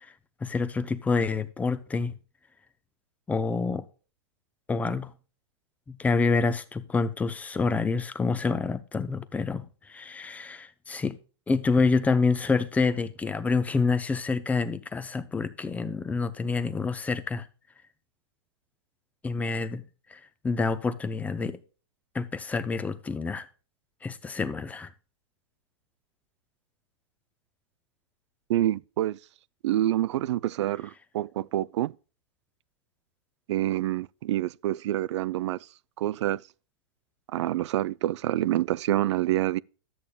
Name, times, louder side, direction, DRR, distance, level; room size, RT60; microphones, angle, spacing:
voice 1, 0.4-2.1 3.3-3.9 4.7-5.1 5.9-11.2 11.5-17.5 19.2-19.8 20.1-21.6 22.1-23.5 24.0-24.9, left 4 dB, 10° left, 0.6 m, -27 dB
voice 2, 28.5-29.2 29.6-31.9 33.5-35.6 36.0-36.4 37.3-39.6, right 13 dB, 70° right, 0.4 m, -27 dB
12.5 x 8.4 x 2.3 m
hypercardioid pair, 140°, 15 cm